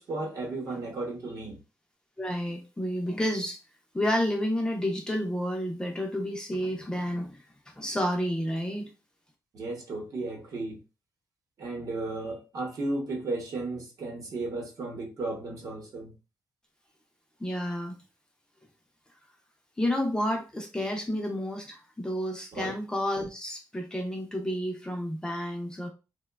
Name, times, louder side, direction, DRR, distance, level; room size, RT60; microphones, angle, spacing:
voice 1, 0.0-1.6 9.5-10.8 11.6-16.1 22.5-22.8, right 2 dB, 55° right, 0.8 m, -34 dB
voice 2, 2.2-3.6 3.9-7.4 7.8-8.9 17.4-18.0 19.8-25.9, equal, 10° left, 0.4 m, -30 dB
2.9 x 2.1 x 2.2 m
wide cardioid pair, 150°, 7 cm